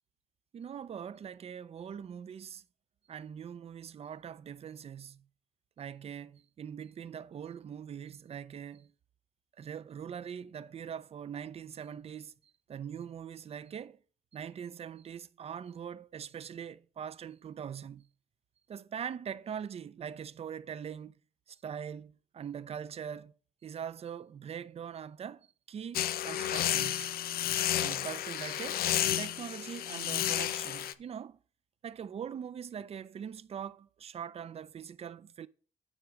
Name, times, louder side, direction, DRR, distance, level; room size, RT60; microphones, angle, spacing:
voice 1, 0.5-2.6 3.1-5.2 5.8-8.9 9.6-12.3 12.7-14.0 14.3-18.1 18.7-21.1 21.5-23.3 23.6-27.1 27.8-28.9 29.2-31.4 31.8-35.5, right 8 dB, 40° right, 0.5 m, -42 dB
sound 1, 25.9-30.9, left 11 dB, 70° left, 0.5 m, -32 dB
9.8 x 4.5 x 5.0 m
cardioid pair, 115°, 16 cm